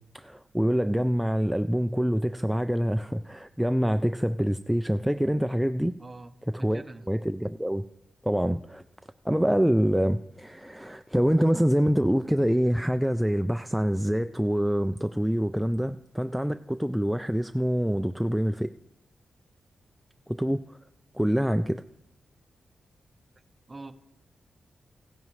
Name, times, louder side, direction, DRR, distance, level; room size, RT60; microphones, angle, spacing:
voice 1, 0.1-6.0 6.5-6.8 7.1-7.8 8.2-8.8 9.3-18.7 20.3-20.6 21.1-21.8, equal, 5° right, 8 dB, 0.3 m, -25 dB
voice 2, 6.0-7.1 23.7-23.9, right 2 dB, 20° right, 8 dB, 0.7 m, -44 dB
16.0 x 10.5 x 3.2 m, 0.84 s
wide cardioid pair, 110°, 0 cm